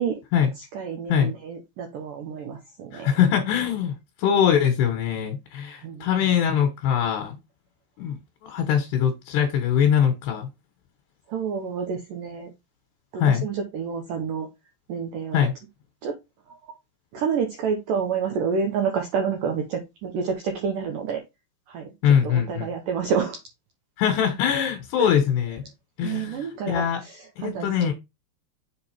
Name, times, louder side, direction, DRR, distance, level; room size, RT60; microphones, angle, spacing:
voice 1, 0.6-3.1 5.8-6.3 11.3-12.5 13.1-14.5 14.9-15.5 16.0-16.2 16.5-16.6 17.1-21.2 21.7-23.4 25.0-25.1 26.0-27.9, right 6 dB, 90° right, 1.9 m, -29 dB
voice 2, 2.9-3.9 4.2-7.4 8.0-8.2 8.4-10.5 13.2-13.5 15.3-15.5 22.0-22.7 24.0-25.6 26.0-27.0 27.4-27.9, left 8 dB, 70° left, 3.1 m, -22 dB
7.5 x 3.8 x 4.4 m
omnidirectional pair, 5.3 m